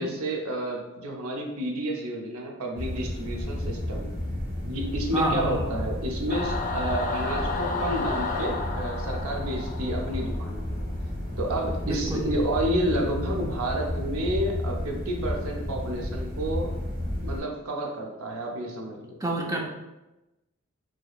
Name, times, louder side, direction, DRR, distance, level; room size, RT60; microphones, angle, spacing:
voice 1, 0.0-4.1 4.7-10.9 11.4-16.7 17.2-19.2, right 1 dB, 80° right, 0 dB, 0.7 m, -30 dB
sound 1, 2.7-17.4, left 1 dB, 40° right, 1.4 m, -32 dB
voice 2, 5.1-5.8 11.8-12.3 19.2-19.6, right 2 dB, 15° right, -1 dB, 0.5 m, -28 dB
Singing / Musical instrument, 6.3-10.9, left 4 dB, 40° left, 0.4 m, -32 dB
4.8 x 3.0 x 2.4 m, 1.0 s
head